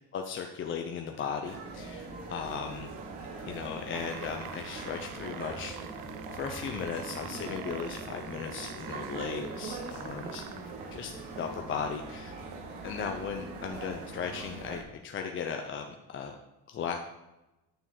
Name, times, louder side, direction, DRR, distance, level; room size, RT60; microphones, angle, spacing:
voice 1, 0.1-2.9 3.4-5.8 6.3-10.4 10.9-12.3 12.8-15.8 16.1-16.4 16.7-17.0, left 6 dB, 30° left, 3 dB, 0.6 m, -37 dB
sound 1, 1.4-14.8, right 3 dB, 80° right, 2.8 m, -41 dB
sound 2, 3.8-10.7 11.6-11.7, right 11 dB, 55° right, 0.7 m, -46 dB
9.4 x 6.9 x 6.0 m, 0.99 s
cardioid pair, 170°, 41 cm